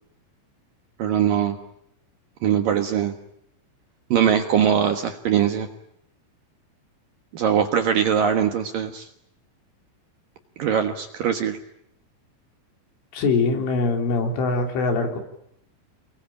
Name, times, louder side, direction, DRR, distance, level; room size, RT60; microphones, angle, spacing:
voice 1, 1.0-1.6 2.4-3.1 4.1-5.7 7.3-9.1 10.6-11.6, right 8 dB, 65° right, 6 dB, 2.5 m, -21 dB
voice 2, 13.1-15.2, left 3 dB, 75° left, 4 dB, 6.0 m, -23 dB
29.0 x 21.0 x 8.9 m, 0.75 s
omnidirectional pair, 5.6 m